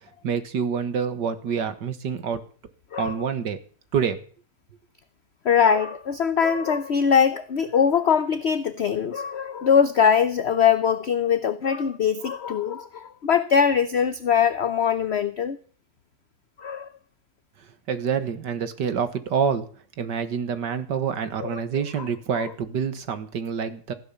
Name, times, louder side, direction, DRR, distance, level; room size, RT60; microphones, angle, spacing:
voice 1, 0.2-2.4 2.9-3.6 3.9-4.2 17.9-19.7 20.0-23.9, right 7 dB, 85° right, 11 dB, 2.1 m, -27 dB
voice 2, 5.4-15.6 16.6-16.9 21.4-21.8, left 7 dB, 50° left, 12 dB, 0.9 m, -22 dB
15.5 x 11.0 x 7.3 m, 0.43 s
omnidirectional pair, 1.8 m